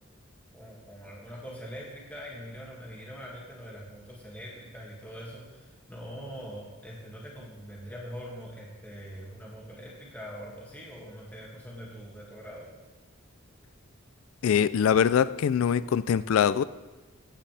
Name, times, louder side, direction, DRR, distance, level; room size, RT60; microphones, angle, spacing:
voice 1, 0.5-12.7, equal, 10° left, -4 dB, 2.1 m, -43 dB
voice 2, 14.4-16.6, left 8 dB, 80° left, 17 dB, 0.3 m, -23 dB
15.5 x 10.0 x 3.4 m, 1.2 s
head